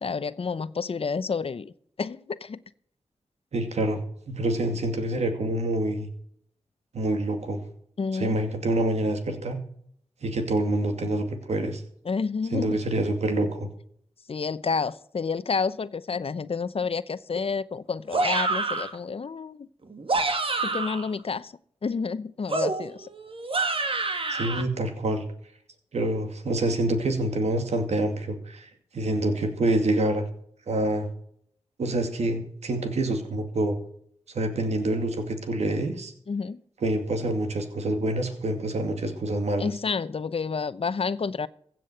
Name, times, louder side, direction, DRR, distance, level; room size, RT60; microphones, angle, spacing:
voice 1, 0.0-1.7 2.0-2.6 8.0-8.4 12.0-12.8 14.3-19.7 20.6-21.5 21.8-23.1 36.3-36.6 39.6-41.5, left 5 dB, 60° left, 15 dB, 0.8 m, -29 dB
voice 2, 3.5-4.0 4.3-6.1 6.9-7.6 8.1-9.6 10.2-11.8 12.5-13.7 24.3-25.2 25.9-30.2 30.7-31.1 31.8-33.8 34.3-36.1 36.8-39.7, right 1 dB, 85° right, 6 dB, 2.4 m, -26 dB
sound 1, 18.1-19.0 19.9-21.1 22.5-24.6, right 3 dB, 55° right, 2.0 m, -27 dB
16.0 x 7.6 x 6.7 m, 0.64 s
cardioid pair, 45°, 11 cm